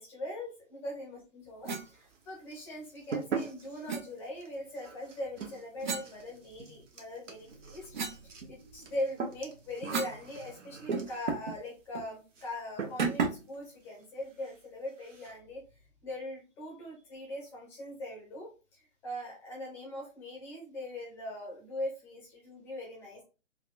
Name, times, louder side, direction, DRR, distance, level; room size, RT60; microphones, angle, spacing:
voice 1, 0.0-15.6 16.0-23.2, left 1 dB, 5° left, -3 dB, 0.6 m, -41 dB
sound 1, 1.6-1.9 3.9-4.1 5.8-6.9 7.3-10.2 10.5-10.6 10.9-11.6 11.9-12.1 13.0-13.5, right 5 dB, 40° right, 0.4 m, -36 dB
sound 2, 1.7-2.2 2.5-11.4 12.3-12.5 12.8-13.3 13.5-13.6 14.0-14.1 14.4-14.6 14.9-15.4, right 5 dB, 70° right, 1.0 m, -41 dB
3.9 x 2.3 x 2.4 m, 0.32 s
figure-of-eight pair, 140°, 38 cm